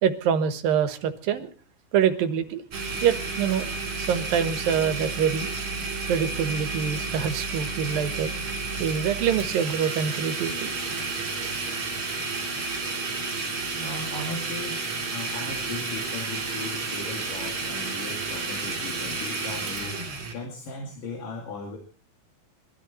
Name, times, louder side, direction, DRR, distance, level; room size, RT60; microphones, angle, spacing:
voice 1, 0.0-1.5 1.9-2.6 3.0-3.6 4.0-5.5 6.1-8.3 8.8-10.7, right 8 dB, 85° right, 9 dB, 3.1 m, -25 dB
Domestic sounds home sounds, 2.7-20.3, right 3 dB, 40° right, 4.3 m, -31 dB
voice 2, 13.8-21.8, left 3 dB, 70° left, 0 dB, 4.2 m, -37 dB
22.0 x 13.5 x 4.3 m, 0.39 s
omnidirectional pair, 4.0 m